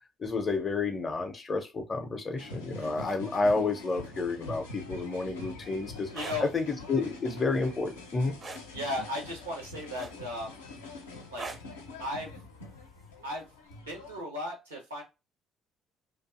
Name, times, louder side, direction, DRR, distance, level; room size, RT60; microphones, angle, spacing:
voice 1, 0.2-6.1 6.4-8.4, left 3 dB, 30° left, 0.5 m, -30 dB
sound 1, 2.4-14.2, left 2 dB, 80° left, 0.5 m, -45 dB
sound 2, 6.0-6.4 8.4-8.7 10.0-10.4 11.4-11.7 13.1-13.3, right 3 dB, 35° right, 0.5 m, -40 dB
voice 2, 6.1-6.5 8.7-10.6 11.3-11.5 12.0-12.3 13.2-13.5 13.9-15.0, left 1 dB, 90° right, 0.8 m, -36 dB
2.5 x 2.3 x 2.4 m
figure-of-eight pair, 50°, 0 cm